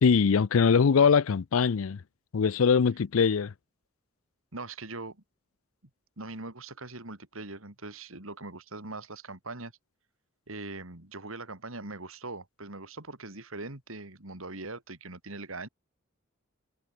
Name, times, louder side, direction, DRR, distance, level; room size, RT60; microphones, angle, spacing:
voice 1, 0.0-2.0 2.3-3.5, left 6 dB, 75° left, 0.5 m, -22 dB
voice 2, 4.5-5.2 6.2-9.7 10.5-15.7, right 2 dB, 75° right, 3.4 m, -41 dB
head